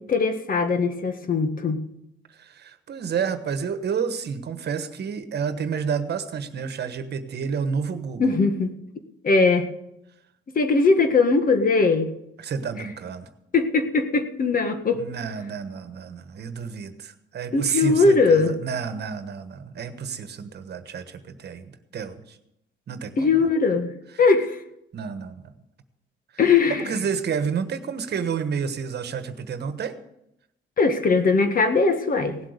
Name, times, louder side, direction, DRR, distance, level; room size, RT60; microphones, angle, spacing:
voice 1, 0.0-1.8 8.2-8.8 9.2-9.7 10.5-12.1 13.5-15.0 17.5-18.6 23.2-23.9 24.2-24.6 26.4-26.9 30.8-32.5, left 4 dB, 45° left, 7 dB, 1.6 m, -20 dB
voice 2, 2.3-8.3 12.4-13.3 14.9-22.4 22.9-23.5 24.9-25.5 26.7-30.0, right 6 dB, 55° right, 10 dB, 1.3 m, -30 dB
17.5 x 7.8 x 6.7 m, 0.84 s
cardioid pair, 90°, 20 cm